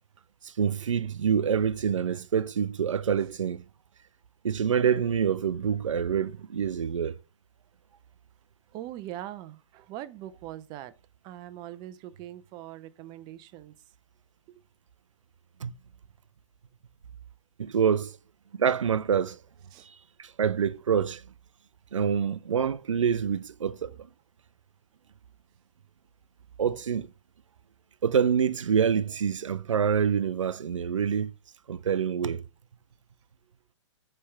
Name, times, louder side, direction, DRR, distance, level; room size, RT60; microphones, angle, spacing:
voice 1, 0.4-3.6 4.4-7.2 15.6-15.7 17.6-18.2 18.6-19.4 20.2-21.2 21.9-24.0 26.6-27.1 28.0-31.3 31.7-32.4, right 7 dB, 85° right, 0.4 m, -26 dB
voice 2, 8.7-10.9 11.2-13.7 19.7-19.9, right 13 dB, 25° right, 0.5 m, -41 dB
8.5 x 3.3 x 3.5 m
figure-of-eight pair, 120°, 16 cm